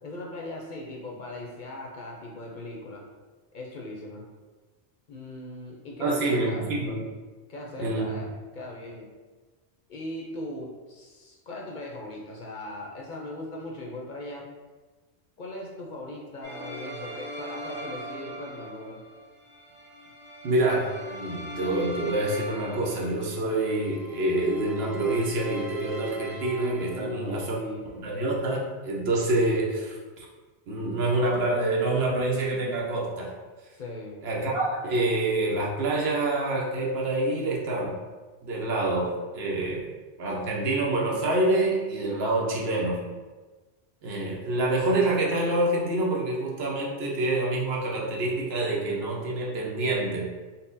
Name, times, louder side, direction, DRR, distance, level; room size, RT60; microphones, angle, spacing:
voice 1, 0.0-3.1 3.5-4.3 5.1-6.6 7.5-9.1 9.9-14.5 15.4-19.0 26.9-27.9 33.8-34.2, left 1 dB, 55° left, -2 dB, 0.7 m, -39 dB
voice 2, 6.0-7.0 7.8-8.2 20.4-27.6 27.9-30.2 30.7-33.3 34.2-38.0 38.4-39.9 40.2-43.0 44.0-50.3, right 2 dB, 70° right, -3 dB, 1.0 m, -27 dB
sound 1, 16.4-27.4, right 1 dB, 15° right, 1.2 m, -41 dB
4.1 x 2.0 x 3.9 m, 1.3 s
omnidirectional pair, 1.1 m